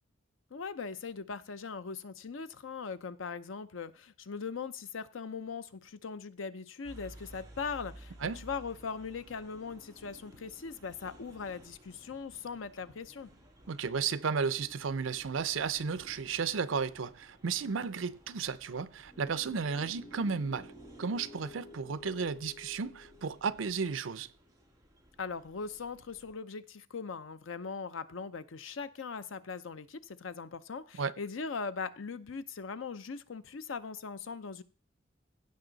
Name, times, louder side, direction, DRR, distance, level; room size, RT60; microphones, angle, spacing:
voice 1, 0.5-13.3 25.2-34.6, left 5 dB, 90° left, 0.6 m, -40 dB
sound 1, 6.8-26.3, equal, 20° right, 2.2 m, -56 dB
voice 2, 13.7-20.7 21.0-24.3 31.0-31.1, right 5 dB, 80° right, 0.6 m, -33 dB
sound 2, 19.1-24.2, left 2 dB, 35° left, 1.2 m, -53 dB
16.0 x 5.4 x 4.0 m
head